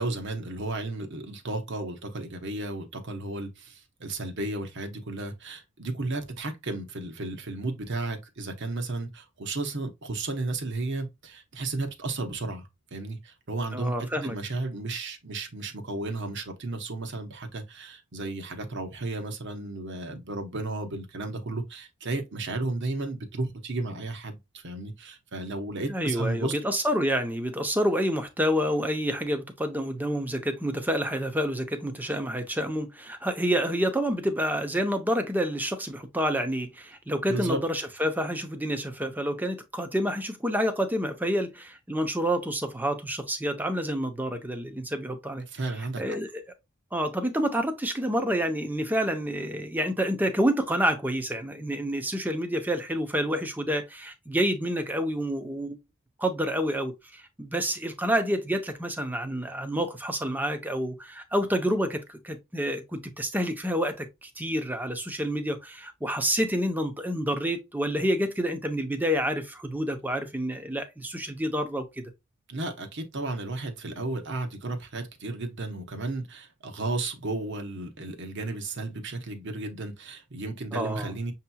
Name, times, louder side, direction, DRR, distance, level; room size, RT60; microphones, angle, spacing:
voice 1, 0.0-26.5 37.3-37.6 45.5-46.2 72.5-81.3, right 2 dB, 55° right, 0.9 m, -33 dB
voice 2, 13.7-14.4 25.9-45.4 45.8-46.4 46.9-55.8 56.2-72.0 80.7-81.1, equal, 10° right, 0.6 m, -28 dB
6.5 x 2.8 x 2.2 m
head